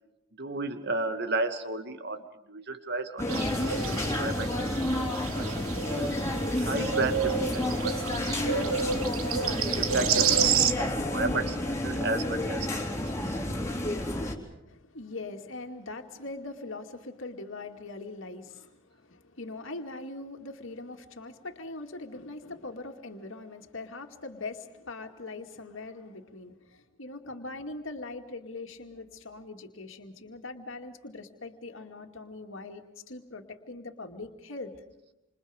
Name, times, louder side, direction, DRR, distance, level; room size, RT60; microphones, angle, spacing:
voice 1, 0.4-6.1 6.6-8.3 8.5-9.1 9.6-13.0 13.3-13.4, right 3 dB, 50° right, 8 dB, 2.2 m, -34 dB
sound 1, 3.2-14.4, left 1 dB, 15° left, 3.4 m, -30 dB
sound 2, 3.3-10.7, right 8 dB, 85° right, 1.5 m, -30 dB
voice 2, 14.7-34.7, left 2 dB, 65° left, 4 dB, 2.4 m, -41 dB
28.5 x 27.5 x 5.2 m, 0.92 s
head